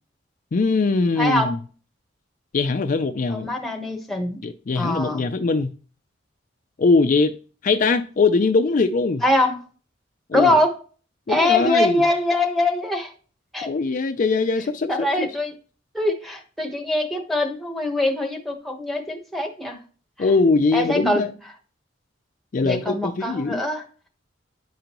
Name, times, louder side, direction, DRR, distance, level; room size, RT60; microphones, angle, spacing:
voice 1, 0.5-1.6 2.5-3.5 4.4-5.7 6.8-7.3 7.6-9.2 10.3-10.5 11.3-11.9 13.7-15.3 20.2-21.3 22.5-23.6, left 4 dB, 45° left, 0.4 m, -21 dB
voice 2, 1.2-1.5 3.3-4.4 4.7-5.3 9.2-9.6 10.3-10.8 11.3-13.1 13.5-13.7 14.9-15.5 15.9-19.8 20.2-20.3 20.7-21.3 22.6-23.8, left 1 dB, ahead, 1.1 m, -23 dB
10.0 x 5.1 x 3.0 m
head